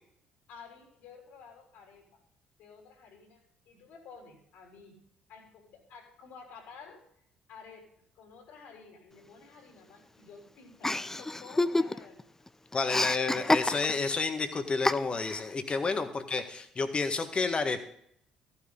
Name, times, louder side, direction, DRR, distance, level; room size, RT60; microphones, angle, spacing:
voice 1, 0.5-2.2 2.6-5.0 5.3-7.0 7.5-7.9 8.1-12.3 15.9-16.0, left 5 dB, 70° left, 1 dB, 3.4 m, -52 dB
Chuckle chortle, 10.8-12.2 12.5-14.1 14.9-15.4, left 2 dB, 15° left, 0.6 m, -28 dB
voice 2, 12.7-17.8, left 4 dB, 35° left, 8 dB, 1.6 m, -30 dB
14.5 x 10.0 x 3.9 m, 0.70 s
hypercardioid pair, 50°, 3 cm